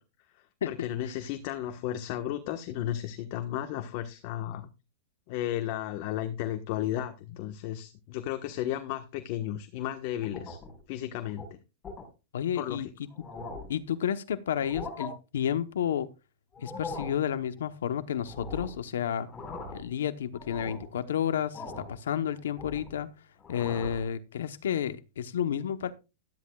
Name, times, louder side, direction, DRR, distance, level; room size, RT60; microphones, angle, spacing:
voice 1, 0.7-4.7 5.3-10.6 10.9-11.4 12.5-12.9, left 12 dB, 45° left, 1.3 m, -34 dB
sound 1, 10.2-10.8 11.2-11.5 11.8-12.1 12.7-12.8 13.1-13.8 14.6-15.1 16.5-17.2 18.3-18.8 19.2-19.9 20.3-20.9 21.5-22.0 22.3-23.0 23.4-24.1, left 3 dB, 15° left, 4.7 m, -41 dB
voice 2, 12.3-12.9 13.7-16.1 16.6-19.3 19.7-23.1 23.5-25.9, left 9 dB, 85° left, 0.9 m, -31 dB
13.0 x 12.5 x 2.4 m
supercardioid pair, 150°, 0 cm